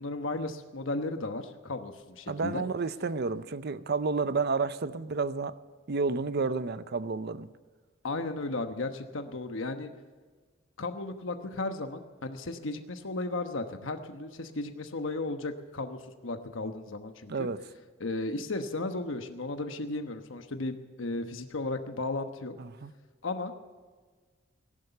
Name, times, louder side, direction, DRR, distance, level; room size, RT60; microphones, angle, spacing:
voice 1, 0.0-2.6 8.0-9.9 10.8-17.5 18.0-22.5 23.2-23.5, left 2 dB, 80° left, 7 dB, 1.1 m, -35 dB
voice 2, 2.3-5.6 5.9-7.5 17.3-17.6 22.6-22.9, right 4 dB, 55° right, 14 dB, 0.6 m, -30 dB
17.0 x 11.0 x 6.8 m, 1.4 s
head